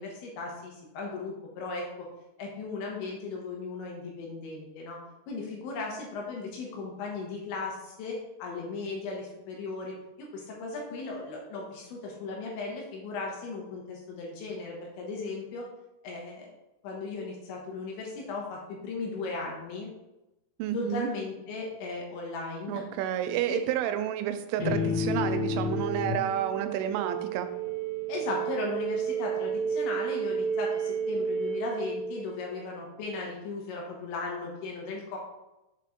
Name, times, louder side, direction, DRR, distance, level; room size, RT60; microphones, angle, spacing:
voice 1, 0.0-2.1 2.4-5.0 5.3-15.7 16.0-16.5 16.8-19.9 20.7-22.8 23.5-23.6 28.1-35.2, left 3 dB, 75° left, -1 dB, 3.3 m, -37 dB
voice 2, 20.6-21.1 22.7-27.5, right 10 dB, 85° right, 9 dB, 2.9 m, -30 dB
sound 1, 24.6-32.5, right 2 dB, 50° left, 2.8 m, -31 dB
7.4 x 4.2 x 3.6 m, 0.95 s
omnidirectional pair, 5.7 m